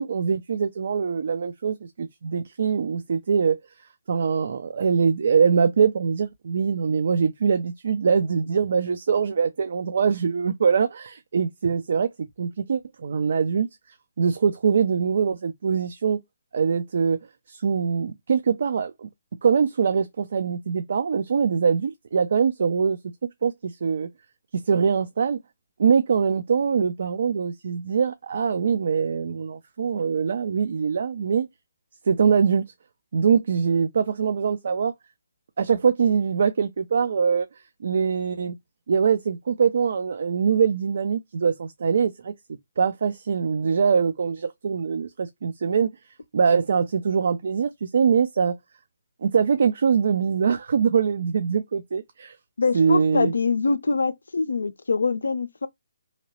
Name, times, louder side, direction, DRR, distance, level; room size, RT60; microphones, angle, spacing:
voice 1, 0.0-12.1 12.4-16.2 16.5-17.2 17.5-19.1 19.4-23.0 23.4-24.1 24.5-25.4 25.8-31.5 32.1-32.6 33.1-34.9 35.6-37.5 37.8-38.6 38.9-42.3 42.8-45.9 46.3-48.6 49.2-52.4 52.7-53.3, right 6 dB, 60° right, 0.4 m, -23 dB
voice 2, 52.6-55.7, left 4 dB, 75° left, 0.4 m, -24 dB
2.9 x 2.9 x 2.8 m
figure-of-eight pair, 145°, 0 cm